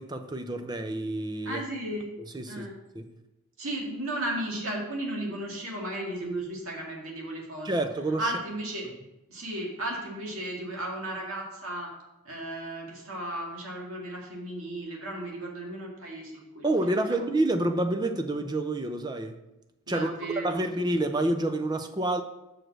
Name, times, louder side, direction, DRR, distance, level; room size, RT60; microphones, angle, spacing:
voice 1, 0.0-1.6 2.3-2.7 2.9-3.1 7.6-8.2 16.6-19.4 19.9-20.1 20.4-22.2, right 1 dB, 20° right, 6 dB, 0.5 m, -28 dB
voice 2, 1.4-2.1 2.5-2.7 3.6-7.8 8.2-8.9 9.3-11.9 12.2-17.2 19.9-20.6, right 1 dB, 70° right, -2 dB, 2.1 m, -35 dB
6.4 x 4.9 x 6.1 m, 0.96 s
head